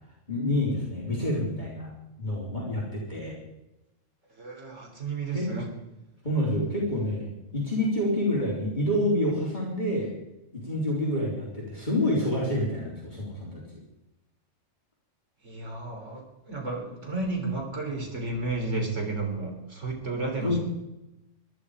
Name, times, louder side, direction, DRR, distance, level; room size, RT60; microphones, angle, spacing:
voice 1, 0.3-1.9 2.2-3.3 5.3-5.5 6.2-10.1 10.5-13.6 20.4-20.6, left 1 dB, 35° left, -4 dB, 4.0 m, -28 dB
voice 2, 4.4-5.7 15.4-20.6, right 3 dB, 70° right, 0 dB, 4.1 m, -32 dB
24.0 x 11.0 x 5.0 m, 0.93 s
omnidirectional pair, 1.3 m